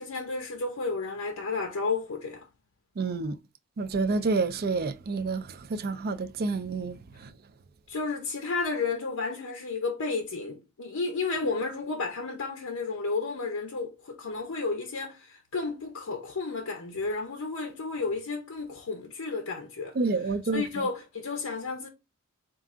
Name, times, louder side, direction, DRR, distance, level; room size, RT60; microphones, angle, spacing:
voice 1, 0.0-2.5 7.9-19.9 20.5-21.9, left 4 dB, 85° left, 0.8 m, -32 dB
voice 2, 3.0-3.4 3.8-7.3 19.9-20.6, right 3 dB, 45° right, 0.4 m, -29 dB
4.6 x 2.5 x 3.6 m
head